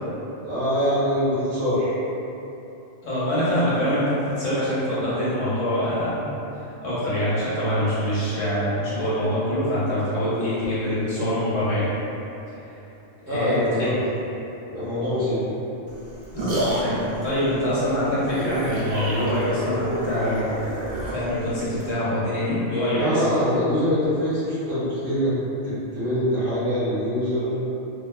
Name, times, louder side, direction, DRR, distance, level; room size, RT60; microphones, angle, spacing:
voice 1, 0.4-2.0 7.8-7.9 13.3-13.9 14.7-15.6 23.0-25.3 25.6-27.5, equal, 50° right, -11 dB, 0.9 m, -24 dB
voice 2, 3.0-6.3 6.8-11.9 13.3-14.0 16.3-20.6 21.1-23.2, equal, 85° left, -11 dB, 1.3 m, -24 dB
sound 1, 15.9-21.9, right 1 dB, 80° right, 0.9 m, -29 dB
2.7 x 2.3 x 2.3 m, 3.0 s
omnidirectional pair, 1.3 m